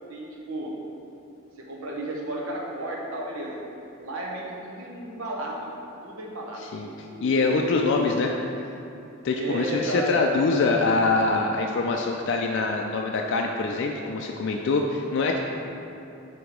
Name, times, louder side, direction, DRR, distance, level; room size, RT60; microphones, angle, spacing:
voice 1, 0.1-0.7 1.6-3.6 4.0-5.8 6.0-7.8 9.3-10.1, right 1 dB, 90° right, -2 dB, 0.9 m, -34 dB
voice 2, 6.7-8.3 9.2-15.4, left 3 dB, 60° left, 1 dB, 0.4 m, -24 dB
4.8 x 4.4 x 5.0 m, 2.7 s
head